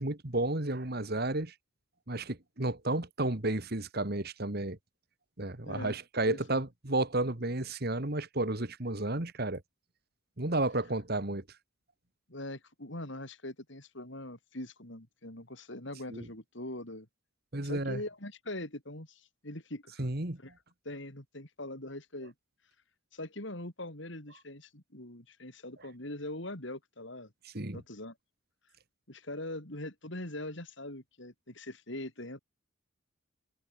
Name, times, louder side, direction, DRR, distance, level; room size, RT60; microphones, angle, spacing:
voice 1, 0.0-1.5 2.1-4.8 5.4-9.6 10.4-11.4 16.1-16.3 17.5-18.0 20.0-20.4 27.5-27.8, right 2 dB, 50° right, 2.0 m, -32 dB
voice 2, 5.6-6.0 6.3-6.4 12.3-17.1 17.6-20.0 20.4-20.5 20.8-22.3 23.1-27.3 27.7-28.1 29.1-32.4, left 1 dB, 60° left, 4.2 m, -42 dB
head